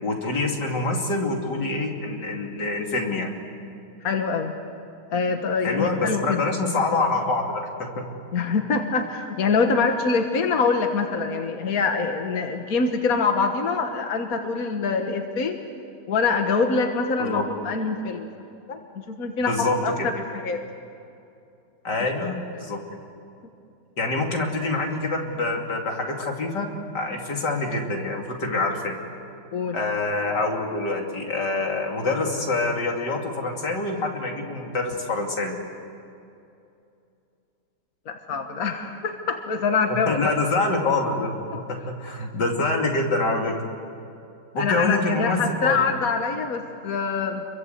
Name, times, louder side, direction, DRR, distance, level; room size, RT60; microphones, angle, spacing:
voice 1, 0.0-3.3 5.6-8.1 17.2-17.5 19.4-20.1 21.8-22.8 24.0-26.7 26.9-29.0 29.7-35.6 39.9-41.3 41.7-43.6 44.5-45.8, left 2 dB, 90° left, 1 dB, 3.4 m, -26 dB
voice 2, 4.0-4.6 5.1-6.4 8.3-15.6 16.1-18.3 18.7-18.8 19.1-20.6 29.5-29.8 38.1-40.3 41.5-41.6 44.6-47.5, left 4 dB, 60° left, 5 dB, 1.8 m, -24 dB
29.0 x 23.0 x 8.1 m, 2.6 s
omnidirectional pair, 1.8 m